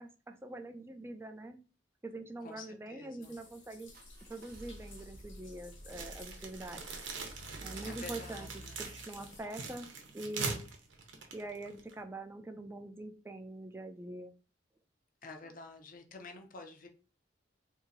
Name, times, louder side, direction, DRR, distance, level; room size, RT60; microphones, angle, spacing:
voice 1, 0.0-1.6 2.0-3.9 4.3-6.8 7.6-8.5 8.8-9.9 10.1-10.7 11.3-14.3, right 2 dB, 15° right, 6 dB, 0.4 m, -44 dB
voice 2, 2.4-3.4 7.8-8.8 15.2-16.9, left 3 dB, 50° left, 6 dB, 0.6 m, -49 dB
sound 1, 3.2-9.4, left 3 dB, 85° left, 1.2 m, -58 dB
sound 2, 3.9-10.8, right 1 dB, 55° right, 0.7 m, -52 dB
sound 3, 5.9-12.0, right 4 dB, 80° right, 0.9 m, -42 dB
2.8 x 2.6 x 3.9 m, 0.34 s
head